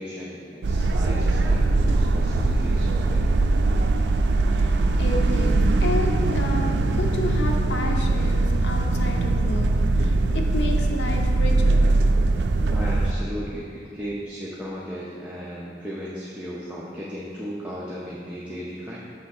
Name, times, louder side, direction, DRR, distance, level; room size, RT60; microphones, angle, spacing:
voice 1, 0.0-3.2 12.7-19.0, equal, 5° right, -7 dB, 0.6 m, -35 dB
sound 1, 0.6-13.1, right 2 dB, 75° right, 0.4 m, -21 dB
voice 2, 4.5-9.7 10.0-11.8, left 2 dB, 85° left, 2 dB, 0.7 m, -31 dB
6.1 x 3.6 x 5.9 m, 2.2 s
head